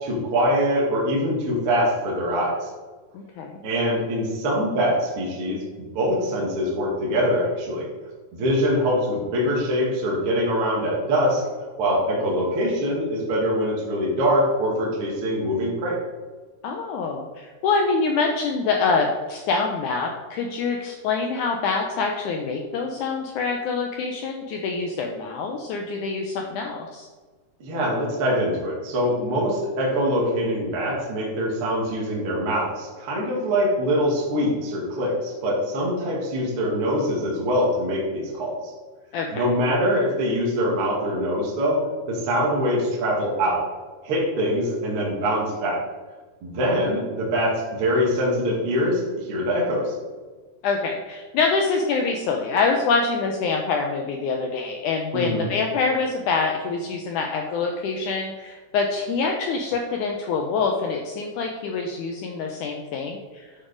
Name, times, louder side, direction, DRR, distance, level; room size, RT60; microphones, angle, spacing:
voice 1, 0.0-2.7 3.6-5.6 5.9-7.9 8.3-11.4 11.8-16.0 27.6-38.6 39.3-43.6 44.0-45.8 46.4-49.9 55.1-55.5, equal, 50° right, -4 dB, 1.9 m, -23 dB
voice 2, 3.1-3.6 16.6-27.1 39.1-39.5 50.6-63.5, left 4 dB, 80° left, 2 dB, 1.8 m, -25 dB
8.8 x 4.4 x 5.0 m, 1.3 s
omnidirectional pair, 4.2 m